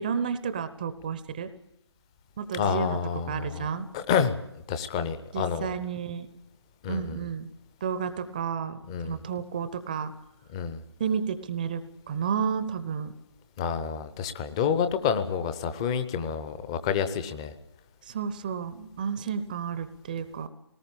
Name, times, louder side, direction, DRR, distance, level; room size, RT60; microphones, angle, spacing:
voice 1, 0.0-1.5 2.4-3.9 5.3-6.3 6.9-7.5 7.8-10.1 11.0-11.8 12.1-13.1 18.0-20.5, right 6 dB, 20° right, 12 dB, 0.7 m, -31 dB
voice 2, 2.5-3.7 3.9-4.4 4.7-5.7 6.8-7.2 8.9-9.2 10.5-10.8 13.6-17.5, left 7 dB, 15° left, 11 dB, 0.8 m, -28 dB
21.5 x 19.0 x 8.6 m, 0.83 s
figure-of-eight pair, 150°, 14 cm